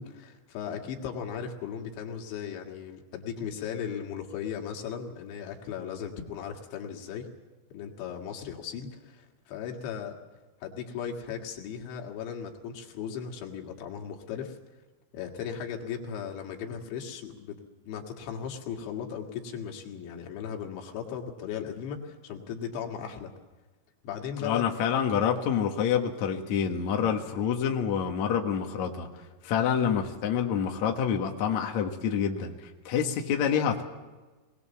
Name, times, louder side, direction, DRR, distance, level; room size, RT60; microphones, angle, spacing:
voice 1, 0.0-7.3 7.7-10.2 10.6-14.6 15.1-23.3 24.0-24.6, left 7 dB, 80° left, 2 dB, 4.3 m, -37 dB
voice 2, 24.4-29.1 29.4-33.8, left 8 dB, 55° left, 2 dB, 2.2 m, -27 dB
20.5 x 20.5 x 7.2 m, 1.2 s
omnidirectional pair, 5.2 m